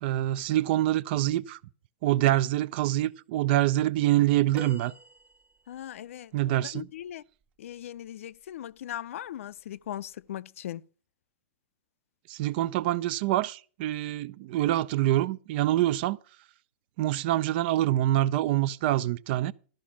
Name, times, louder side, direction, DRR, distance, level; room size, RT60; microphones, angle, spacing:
voice 1, 0.0-1.6 2.0-4.9 6.3-6.9 12.3-16.2 17.0-19.5, right 14 dB, 45° right, 0.4 m, -25 dB
sound 1, 4.5-6.0 8.3-8.5 9.8-9.9, right 2 dB, 15° right, 0.9 m, -46 dB
voice 2, 5.7-7.2 7.6-10.8, left 11 dB, 75° left, 0.5 m, -39 dB
13.0 x 5.1 x 8.4 m
supercardioid pair, 150°, 7 cm